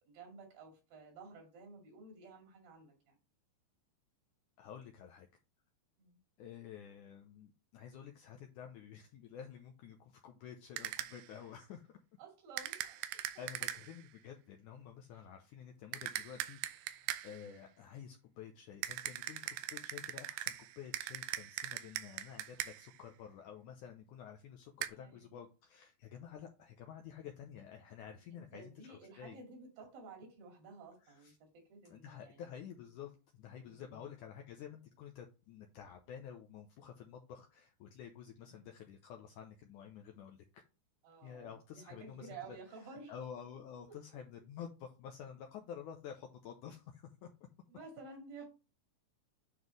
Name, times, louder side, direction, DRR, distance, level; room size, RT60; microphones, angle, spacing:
voice 1, 0.0-3.2 6.0-6.2 12.2-13.0 15.1-15.2 24.9-25.4 28.3-32.4 33.6-34.1 38.4-38.6 41.0-43.1 47.7-48.5, right 4 dB, 65° right, 4.0 m, -53 dB
voice 2, 4.6-5.3 6.4-12.0 13.4-29.4 31.0-31.4 31.9-40.6 41.2-42.6 42.9-47.3, left 8 dB, 80° left, 1.9 m, -50 dB
sound 1, 10.8-11.3 12.6-14.0 15.9-17.5 18.8-23.0 24.8-24.9, right 13 dB, 85° right, 2.5 m, -41 dB
9.2 x 4.1 x 3.2 m
omnidirectional pair, 4.4 m